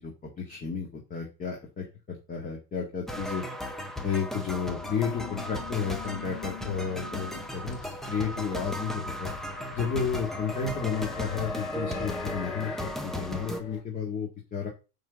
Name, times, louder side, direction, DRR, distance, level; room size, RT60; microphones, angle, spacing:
voice 1, 0.0-3.4 4.0-7.8 8.1-9.3 9.7-14.7, left 6 dB, 20° left, 0 dB, 1.8 m, -32 dB
sound 1, 3.1-13.6, equal, ahead, 0.6 m, -36 dB
sound 2, 4.5-13.8, left 7 dB, 45° left, 4.2 m, -43 dB
9.1 x 3.9 x 6.9 m, 0.31 s
supercardioid pair, 160°, 43 cm